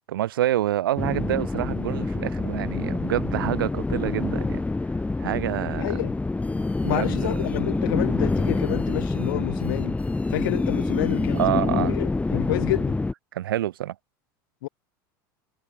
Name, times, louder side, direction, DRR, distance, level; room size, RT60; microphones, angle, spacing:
voice 1, 0.1-4.6 5.2-6.0 6.8-7.5 11.3-12.0 13.3-14.0, right 13 dB, 80° right, 4.2 m, -27 dB
sound 1, 1.0-13.1, left 3 dB, 10° left, 2.0 m, -26 dB
voice 2, 5.8-6.1 6.8-10.0 10.3-13.0 14.6-14.7, left 18 dB, 75° left, 6.4 m, -29 dB
hypercardioid pair, 85°, 11 cm